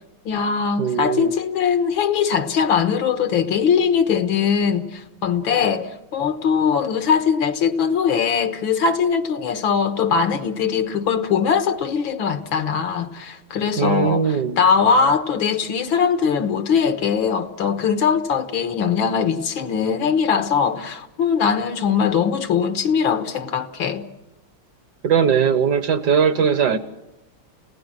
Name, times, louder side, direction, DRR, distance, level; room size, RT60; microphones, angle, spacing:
voice 1, 0.3-24.1, left 6 dB, 75° left, 2.0 m, -21 dB
voice 2, 0.8-1.3 13.8-14.6 25.0-26.8, right 7 dB, 60° right, 1.5 m, -19 dB
29.5 x 17.0 x 7.6 m
omnidirectional pair, 2.2 m